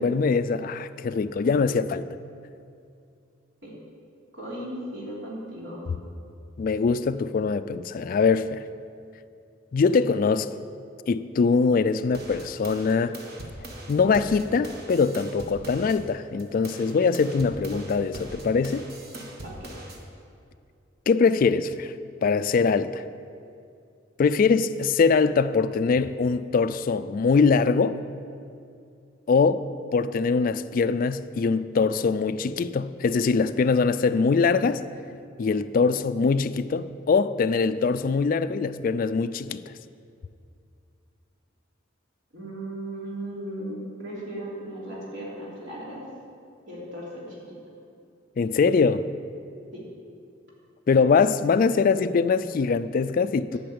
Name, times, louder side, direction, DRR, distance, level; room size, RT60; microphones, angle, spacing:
voice 1, 0.0-2.1 6.6-8.6 9.7-10.5 11.1-13.2 13.9-18.9 21.1-21.9 22.2-23.0 24.2-28.0 29.3-29.6 29.9-34.8 35.4-39.7 48.4-49.1 50.9-53.6, left 5 dB, 45° left, 0.3 m, -22 dB
voice 2, 4.3-5.9 19.4-19.7 42.3-46.0 46.7-47.6 49.7-49.8, right 1 dB, 70° right, 3.3 m, -37 dB
sound 1, 12.1-16.0 16.4-20.0, right 1 dB, 55° right, 1.4 m, -41 dB
11.0 x 5.8 x 8.7 m
head